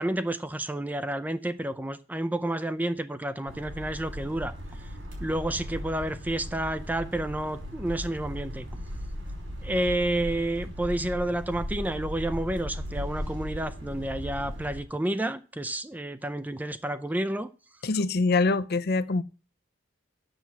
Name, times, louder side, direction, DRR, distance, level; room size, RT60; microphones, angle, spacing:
voice 1, 0.0-4.5 5.2-8.7 9.6-17.5, right 1 dB, 10° right, 0.4 m, -30 dB
sound 1, 3.5-14.8, equal, 75° right, 5.0 m, -37 dB
voice 2, 17.8-19.2, left 3 dB, 55° left, 0.5 m, -24 dB
8.0 x 7.0 x 7.4 m
head